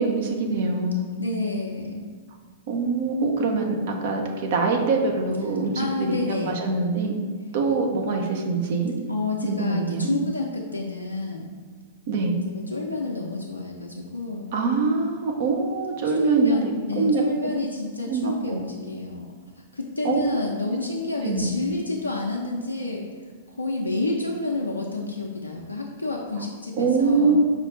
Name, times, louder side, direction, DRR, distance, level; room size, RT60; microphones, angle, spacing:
voice 1, 0.0-1.1 2.7-7.2 7.5-8.9 9.4-10.2 12.1-12.4 14.5-17.2 18.1-18.6 20.0-20.2 21.2-21.5 26.8-27.4, right 3 dB, 50° right, 2 dB, 0.7 m, -24 dB
voice 2, 1.2-2.1 5.8-6.6 9.1-11.5 12.5-14.5 16.2-19.2 19.6-23.1 23.6-27.4, left 3 dB, 85° left, -1 dB, 0.4 m, -29 dB
5.0 x 2.4 x 4.3 m, 1.5 s
figure-of-eight pair, 105°, 0 cm